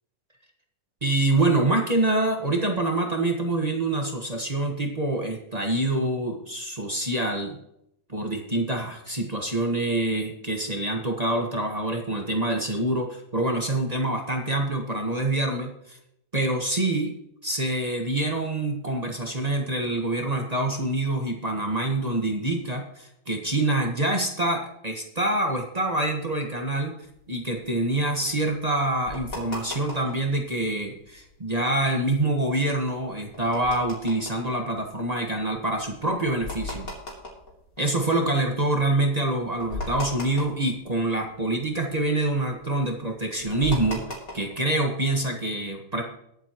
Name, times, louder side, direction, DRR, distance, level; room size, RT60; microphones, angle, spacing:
voice 1, 1.0-7.6 8.1-16.0 16.3-17.1 17.4-26.9 27.3-36.9 37.8-44.0 44.3-46.0, right 2 dB, 25° right, 2 dB, 1.5 m, -26 dB
sound 1, 27.1-30.3 30.7-30.8 31.0-31.3 31.8-38.5 38.9-39.0 39.3-41.4 41.7-44.7, left 2 dB, 65° left, 3.3 m, -38 dB
21.5 x 8.0 x 3.0 m, 0.77 s
omnidirectional pair, 1.6 m